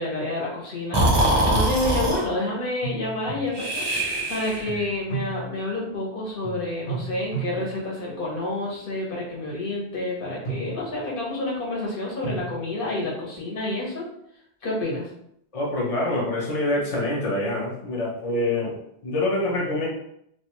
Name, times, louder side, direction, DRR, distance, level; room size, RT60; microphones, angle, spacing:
voice 1, 0.0-14.1 14.6-15.1, left 2 dB, 60° left, -4 dB, 1.0 m, -29 dB
Breathing, 0.9-2.3 3.5-4.8, right 1 dB, 30° right, 0.5 m, -22 dB
sound 1, 2.8-4.0 4.7-6.1 6.4-8.8 9.3-9.6 10.2-11.4 12.2-12.6, right 4 dB, 85° left, 1.0 m, -35 dB
voice 2, 15.5-18.7 19.0-19.9, left 2 dB, 40° left, -3 dB, 0.5 m, -25 dB
2.4 x 2.2 x 2.8 m, 0.73 s
omnidirectional pair, 1.1 m